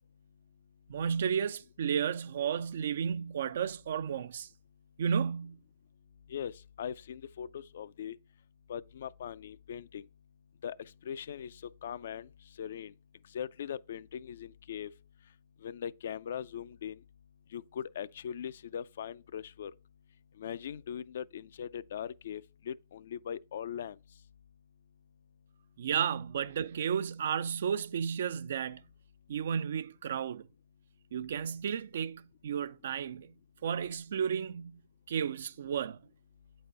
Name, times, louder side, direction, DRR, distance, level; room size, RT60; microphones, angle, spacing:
voice 1, 0.9-4.5 5.0-5.6 25.8-28.8 29.3-30.5 31.1-33.3 33.6-34.7 35.1-36.0, right 7 dB, 65° right, 0.3 m, -33 dB
voice 2, 6.3-8.2 8.7-10.0 10.6-10.8 11.0-12.3 12.6-12.9 13.3-14.9 15.6-17.0 17.5-19.7 20.4-24.0, left 8 dB, 65° left, 0.3 m, -40 dB
8.5 x 4.1 x 3.8 m
hypercardioid pair, 120°, 0 cm